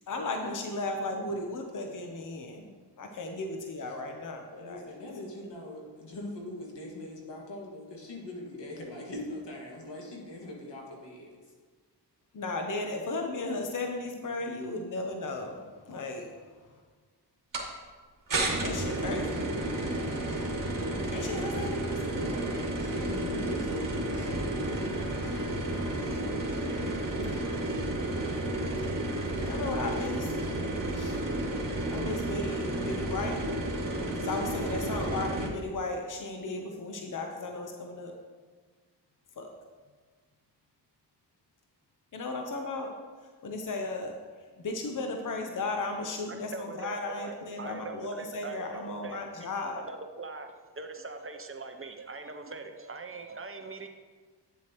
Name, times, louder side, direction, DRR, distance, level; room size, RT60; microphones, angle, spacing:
voice 1, 0.1-2.7 3.0-4.8 12.3-16.3 18.6-19.5 21.1-22.0 29.4-30.3 30.9-31.2 31.9-33.4 34.2-38.1 39.4-39.5 42.1-42.9 43.4-44.1 44.6-46.5 46.8-49.8, left 2 dB, 45° left, 3 dB, 0.9 m, -35 dB
voice 2, 4.5-11.3 22.0-22.5 22.8-24.3 24.5-24.9, left 1 dB, 75° left, -1 dB, 2.1 m, -41 dB
sound 1, 17.5-17.7 18.3-35.5, right 1 dB, 50° right, 1.8 m, -31 dB
voice 3, 46.3-53.9, right 3 dB, 30° right, 6 dB, 0.7 m, -42 dB
9.4 x 7.4 x 3.1 m, 1.5 s
cardioid pair, 70°, 42 cm